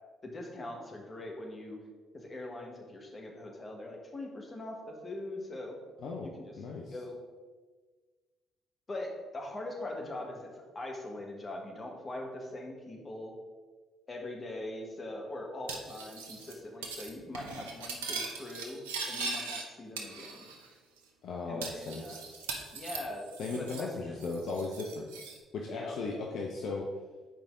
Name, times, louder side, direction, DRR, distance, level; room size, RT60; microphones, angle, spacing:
voice 1, 0.2-1.8 2.1-5.8 6.2-6.5 6.9-7.2 8.9-13.3 14.1-20.5 21.5-22.2 22.7-23.3 23.5-24.2 25.7-26.0, left 1 dB, 35° left, 1 dB, 1.6 m, -42 dB
voice 2, 6.6-7.0 21.2-22.2 23.4-25.1 25.5-26.9, left 3 dB, 60° left, 0 dB, 0.8 m, -37 dB
Cutlery silverware, 15.7-16.5 16.8-17.1 17.3-19.6 20.0-20.7 21.0-21.1 21.6-23.9 24.2-25.4, right 4 dB, 80° right, 0.7 m, -40 dB
7.9 x 5.1 x 3.8 m, 1.4 s
hypercardioid pair, 45°, 0 cm